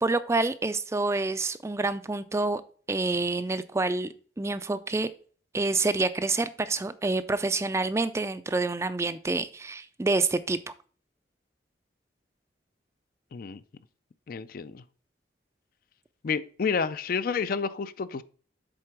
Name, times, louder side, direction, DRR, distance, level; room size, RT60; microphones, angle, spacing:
voice 1, 0.0-2.6 2.9-5.1 5.5-10.6, right 3 dB, 15° right, 0.3 m, -27 dB
voice 2, 14.3-14.8 16.2-18.2, left 5 dB, 50° left, 0.4 m, -30 dB
7.8 x 3.8 x 5.9 m
head